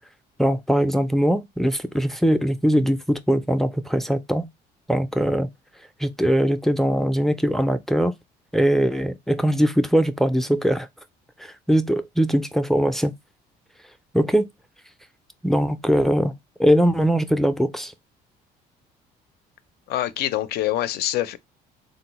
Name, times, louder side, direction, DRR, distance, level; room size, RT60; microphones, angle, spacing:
voice 1, 0.4-4.5 4.9-5.5 6.0-8.1 8.5-10.9 11.4-13.1 14.1-14.5 15.4-16.3 16.6-17.9, equal, ahead, 0.4 m, -21 dB
voice 2, 19.9-21.4, left 13 dB, 70° left, 0.4 m, -25 dB
3.7 x 2.0 x 2.9 m
cardioid pair, 110°, 17 cm